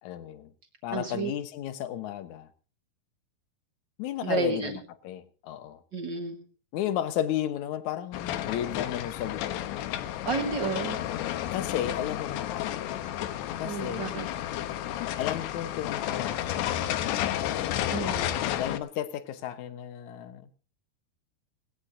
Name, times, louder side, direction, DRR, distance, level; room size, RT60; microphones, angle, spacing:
voice 1, 0.0-0.5 0.8-2.5 4.0-4.8 5.0-5.8 6.7-9.8 11.5-12.9 13.6-14.1 15.2-16.7 18.6-20.5, left 11 dB, 70° left, 1.8 m, -33 dB
voice 2, 0.9-1.3 4.2-4.8 5.9-6.4 10.2-11.0 13.6-14.2 17.9-18.4, right 3 dB, 80° right, 1.0 m, -31 dB
sound 1, 8.1-18.8, left 12 dB, 90° left, 3.1 m, -31 dB
19.0 x 17.5 x 2.7 m
omnidirectional pair, 4.8 m